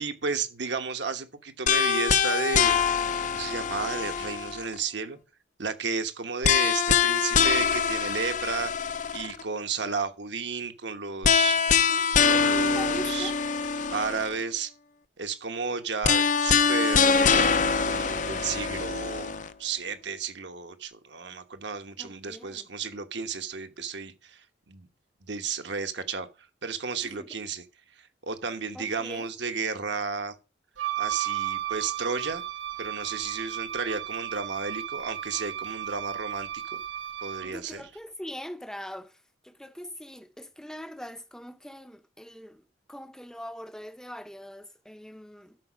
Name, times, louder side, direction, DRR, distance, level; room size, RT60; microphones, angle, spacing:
voice 1, 0.0-2.8 3.2-5.2 5.6-8.7 9.1-11.6 12.2-13.3 13.9-14.7 15.2-17.6 17.8-19.3 19.6-24.4 24.7-24.9 25.2-26.3 26.6-27.6 28.2-30.3 31.0-32.4 32.8-36.8 37.2-37.9, right 5 dB, 65° right, 1.2 m, -33 dB
sound 1, 1.7-4.8 6.4-9.4 11.2-14.4 16.0-19.5, left 6 dB, 40° left, 0.6 m, -24 dB
voice 2, 12.5-13.4 22.0-22.7 27.0-27.3 28.7-29.3 37.4-42.6 42.9-45.6, equal, 5° left, 0.7 m, -42 dB
Wind instrument woodwind instrument, 30.8-37.5, right 12 dB, 80° right, 0.9 m, -34 dB
12.5 x 5.5 x 6.1 m
head